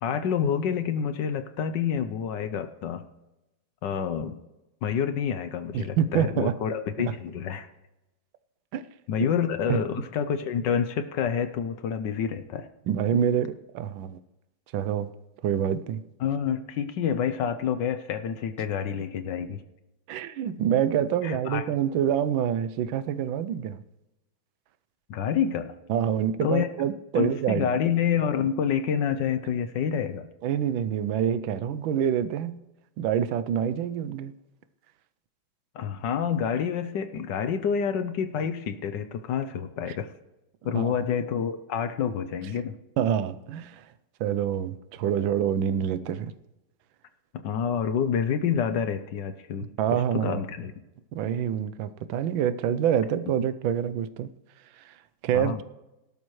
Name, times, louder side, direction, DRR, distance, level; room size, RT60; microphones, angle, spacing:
voice 1, 0.0-3.1 3.8-4.4 4.8-7.7 9.1-12.7 16.2-19.6 21.2-21.6 25.1-25.7 26.4-26.7 27.1-30.3 35.7-40.1 40.6-42.7 47.3-50.7 55.3-55.6, left 7 dB, 65° left, 10 dB, 1.2 m, -28 dB
voice 2, 5.7-6.5 7.0-7.2 8.7-8.9 9.7-9.8 12.9-14.2 14.7-15.1 15.4-16.0 20.1-23.8 25.9-27.7 30.4-32.6 33.0-34.3 40.7-41.0 43.0-43.9 44.2-46.3 49.8-50.4 51.1-54.3 54.8-55.0 55.2-55.6, right 9 dB, 75° right, 14 dB, 1.4 m, -26 dB
18.0 x 12.0 x 3.2 m, 0.96 s
omnidirectional pair, 2.3 m